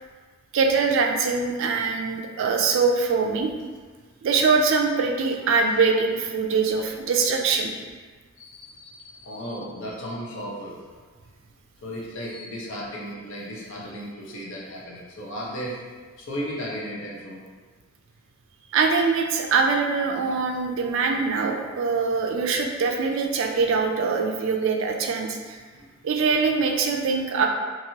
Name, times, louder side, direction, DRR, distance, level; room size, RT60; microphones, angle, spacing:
voice 1, 0.5-3.5 4.2-7.7 18.7-25.6 26.0-27.5, right 4 dB, 65° right, 3 dB, 0.4 m, -23 dB
voice 2, 5.4-5.9 8.4-10.8 11.8-15.8 16.2-17.4 24.7-24.8 25.6-25.9, equal, 65° left, -4 dB, 0.7 m, -35 dB
2.9 x 2.5 x 2.8 m, 1.4 s
head